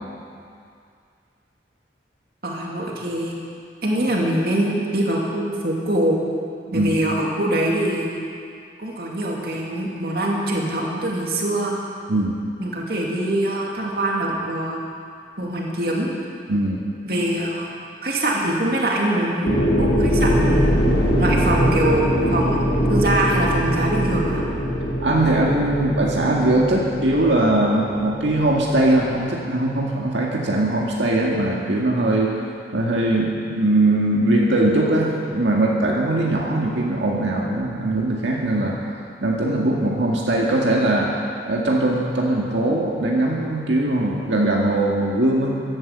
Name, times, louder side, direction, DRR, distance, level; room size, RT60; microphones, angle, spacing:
voice 1, 2.4-3.4 3.8-6.2 6.7-8.1 8.8-11.7 12.6-14.8 15.4-16.1 17.0-17.7 18.0-20.8 21.2-24.4, right 1 dB, 55° right, -2 dB, 2.6 m, -23 dB
voice 2, 16.5-16.8 25.0-32.4 32.7-38.8 39.2-41.1 41.4-45.5, right 1 dB, 90° right, -2 dB, 2.0 m, -20 dB
sound 1, 19.4-29.2, equal, 65° left, 3.7 m, -22 dB
16.0 x 12.0 x 7.4 m, 2.4 s
head